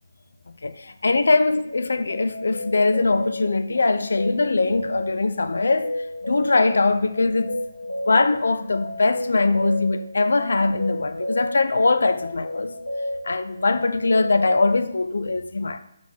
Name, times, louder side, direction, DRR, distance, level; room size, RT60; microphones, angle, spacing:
voice 1, 0.6-5.9 6.2-7.6 8.1-12.7 13.2-15.8, left 3 dB, 70° left, 0.5 m, -21 dB
sound 1, 1.7-14.9, left 1 dB, 90° left, 1.0 m, -33 dB
4.7 x 4.0 x 5.4 m
figure-of-eight pair, 150°, 0 cm